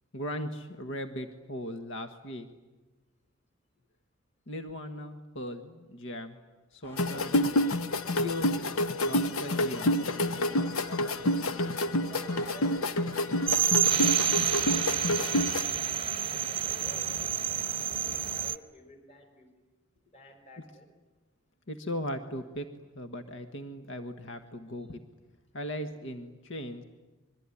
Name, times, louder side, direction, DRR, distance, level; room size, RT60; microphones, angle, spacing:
voice 1, 0.1-2.5 4.5-6.4 6.7-7.5 8.2-8.6 9.0-9.9 21.7-22.7 22.9-25.0 25.5-26.8, left 1 dB, 60° left, 8 dB, 1.5 m, -38 dB
sound 1, 6.8-14.1, equal, 10° left, 1.5 m, -50 dB
sound 2, 7.0-15.6, left 1 dB, 85° left, 0.9 m, -28 dB
voice 2, 12.1-15.8 16.3-19.5 20.1-20.9 24.8-24.9, equal, 30° left, 5 dB, 5.0 m, -51 dB
sound 3, 13.5-18.6, right 9 dB, 25° right, 0.9 m, -28 dB
26.0 x 22.5 x 10.0 m, 1.2 s
head